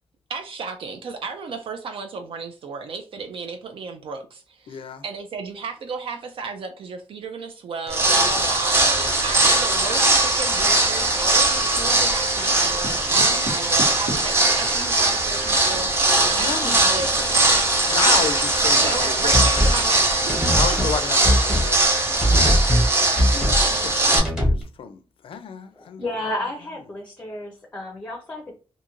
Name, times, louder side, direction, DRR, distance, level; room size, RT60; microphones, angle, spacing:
voice 1, 0.3-17.4 18.0-18.1 18.8-20.8, right 4 dB, 70° right, 0.4 m, -34 dB
voice 2, 4.7-5.0 8.4-9.4 13.1-13.5 16.2-17.4 17.9-19.5 20.5-21.8 22.3-22.5 23.0-26.0, left 7 dB, 70° left, 0.4 m, -32 dB
sound 1, 7.9-24.2, right 2 dB, 25° right, 0.6 m, -20 dB
sound 2, 8.7-8.9 9.1-11.8 12.3-14.9 15.3-15.8 16.4-16.5 16.9-17.0 17.5-17.8 18.1-20.2 21.7-21.8, right 1 dB, 90° right, 1.3 m, -36 dB
sound 3, 19.3-19.8 20.3-21.0 21.2-21.7 22.2-22.9 23.2-23.6 24.1-24.6, equal, 5° right, 1.0 m, -20 dB
voice 3, 25.7-28.5, left 1 dB, 20° left, 0.5 m, -32 dB
2.5 x 2.4 x 2.9 m
wide cardioid pair, 170°, 10 cm